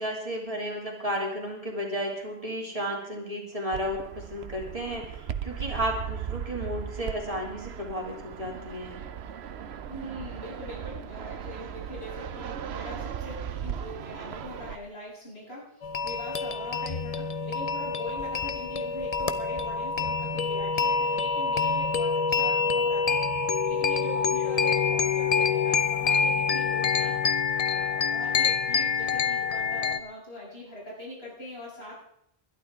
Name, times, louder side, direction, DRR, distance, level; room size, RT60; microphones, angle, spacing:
voice 1, 0.0-9.0, equal, 35° right, -1 dB, 3.0 m, -33 dB
Fixed-wing aircraft airplane, 3.7-14.7, right 8 dB, 80° right, 1.0 m, -37 dB
voice 2, 9.8-27.4 27.7-32.0, left 1 dB, 75° left, -6 dB, 8.1 m, -42 dB
sound 1, 15.8-30.0, left 5 dB, 40° left, 0.7 m, -26 dB
20.5 x 12.0 x 3.7 m, 0.73 s
omnidirectional pair, 1.1 m